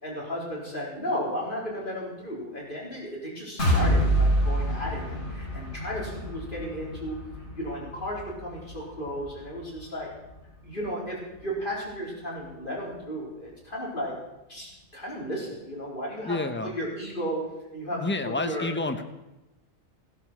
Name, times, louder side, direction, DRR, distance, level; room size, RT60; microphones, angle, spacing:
voice 1, 0.0-7.1 7.5-10.1 10.6-14.2 14.5-16.4 16.6-17.4 17.7-18.7, equal, 45° left, -4 dB, 4.3 m, -34 dB
sound 1, 3.6-11.4 11.8-11.9 12.3-12.4, equal, 70° left, 4.5 m, -28 dB
voice 2, 16.2-16.7 17.9-19.0, left 2 dB, 10° left, 7 dB, 0.9 m, -29 dB
16.0 x 11.0 x 6.1 m, 0.98 s
omnidirectional pair, 1.2 m